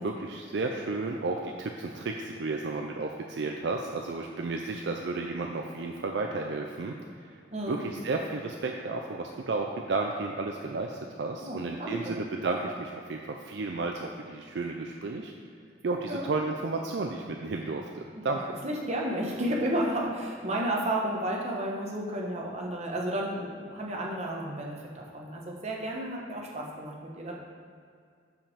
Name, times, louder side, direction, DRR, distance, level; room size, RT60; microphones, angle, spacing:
voice 1, 0.0-7.4 7.7-15.3 15.8-18.4, right 3 dB, 60° right, 2 dB, 0.4 m, -33 dB
voice 2, 7.5-7.8 11.4-12.2 16.1-16.3 18.1-18.3 18.6-27.4, right 1 dB, 35° right, -2 dB, 1.1 m, -32 dB
5.7 x 5.3 x 6.6 m, 2.2 s
head